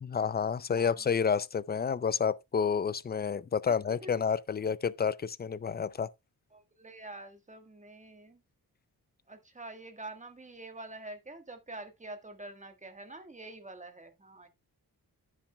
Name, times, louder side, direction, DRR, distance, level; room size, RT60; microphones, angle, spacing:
voice 1, 0.0-6.1, left 6 dB, 25° left, 0.4 m, -30 dB
voice 2, 0.7-1.1 3.7-4.2 6.5-8.4 9.3-14.5, right 2 dB, 20° right, 1.5 m, -46 dB
14.5 x 6.0 x 2.3 m
wide cardioid pair, 115°, 37 cm